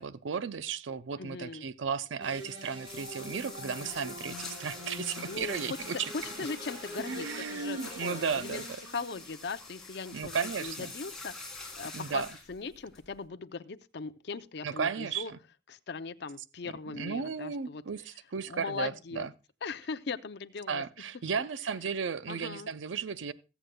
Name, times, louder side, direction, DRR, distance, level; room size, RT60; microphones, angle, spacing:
voice 1, 0.0-6.1 7.1-8.7 10.1-10.9 11.9-12.3 14.6-15.4 16.9-19.3 20.7-23.3, right 6 dB, 75° right, 0.5 m, -34 dB
voice 2, 1.2-1.6 5.3-5.8 6.1-8.6 8.9-12.2 12.5-15.3 15.7-17.8 18.5-19.2 19.6-20.8 22.3-22.7, left 4 dB, 60° left, 0.5 m, -39 dB
sound 1, 2.2-9.3, equal, 25° right, 3.1 m, -45 dB
sound 2, 2.8-13.2, left 3 dB, 5° left, 3.1 m, -45 dB
22.0 x 7.9 x 2.2 m
head